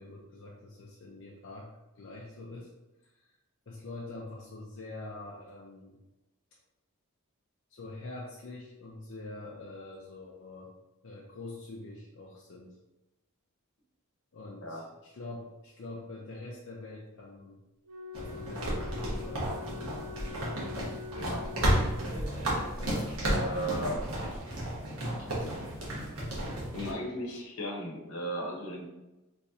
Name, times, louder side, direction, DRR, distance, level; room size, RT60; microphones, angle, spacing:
voice 1, 0.0-2.7 3.0-3.3 3.7-6.0 7.7-10.7 11.0-12.8 14.3-17.6 18.1-19.5 22.8-23.1, left 2 dB, 60° left, -3 dB, 0.5 m, -45 dB
Wind instrument woodwind instrument, 17.8-22.3, left 6 dB, 50° right, 0.5 m, -44 dB
sound 1, 18.1-26.9, right 1 dB, 75° right, 1.1 m, -32 dB
voice 2, 21.1-21.5 23.2-24.1 26.7-28.9, equal, 80° left, 0 dB, 0.9 m, -35 dB
3.6 x 3.0 x 2.8 m, 1.0 s
head